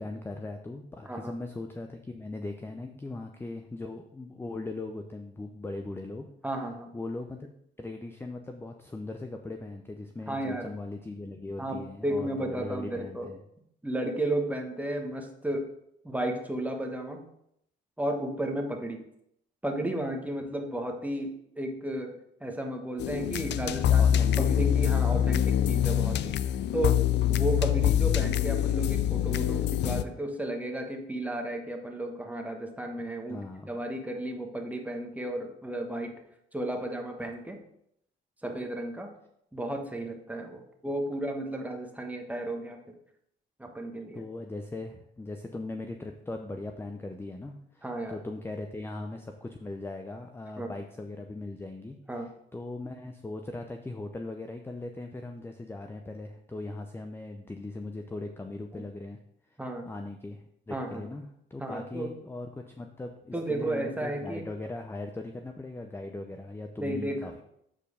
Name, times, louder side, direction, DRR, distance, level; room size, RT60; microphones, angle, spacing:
voice 1, 0.0-6.3 6.9-7.5 7.8-13.4 23.9-24.7 25.3-25.4 33.3-33.7 44.1-52.0 52.5-59.2 59.9-61.2 61.5-67.4, left 2 dB, 10° left, 5 dB, 0.6 m, -39 dB
voice 2, 6.4-6.9 10.3-10.8 11.6-13.3 13.8-15.7 16.0-17.2 18.0-19.0 19.6-24.0 24.4-26.4 26.7-27.0 27.3-33.4 33.7-36.1 36.5-37.6 38.4-39.1 39.5-43.0 43.6-44.2 47.8-48.2 50.6-50.7 52.1-52.3 58.7-58.8 59.6-59.9 60.7-61.0 61.6-62.1 63.3-64.4 66.8-67.2, right 1 dB, 5° right, 3 dB, 1.3 m, -33 dB
sound 1, 23.0-30.0, left 10 dB, 60° left, 0.4 m, -25 dB
7.5 x 4.5 x 4.9 m, 0.74 s
cardioid pair, 90°, 20 cm